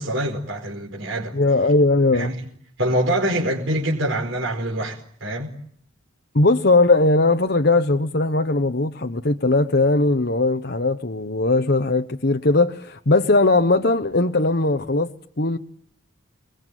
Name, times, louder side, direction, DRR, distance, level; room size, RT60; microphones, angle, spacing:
voice 1, 0.0-1.4 2.1-2.3 2.8-5.5, right 1 dB, 65° right, 4.9 m, -25 dB
voice 2, 1.3-2.3 6.3-15.6, left 2 dB, 50° left, 1.1 m, -19 dB
28.0 x 22.0 x 9.2 m
head